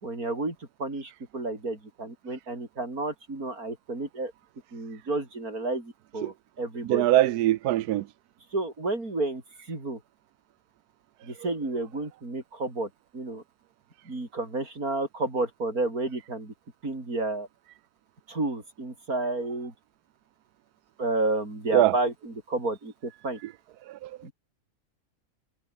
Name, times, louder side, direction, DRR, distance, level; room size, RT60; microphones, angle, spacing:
voice 1, 0.0-0.5 0.8-4.3 4.7-7.0 8.5-9.4 9.7-10.0 11.2-13.4 14.1-16.5 16.8-17.5 18.3-19.7 21.0-23.4 24.2-24.3, right 2 dB, 70° right, 6.1 m, -31 dB
voice 2, 6.8-8.1 11.4-11.5 21.7-21.9 23.4-23.5 23.9-24.1, right 14 dB, 85° right, 1.2 m, -23 dB
omnidirectional pair, 1.6 m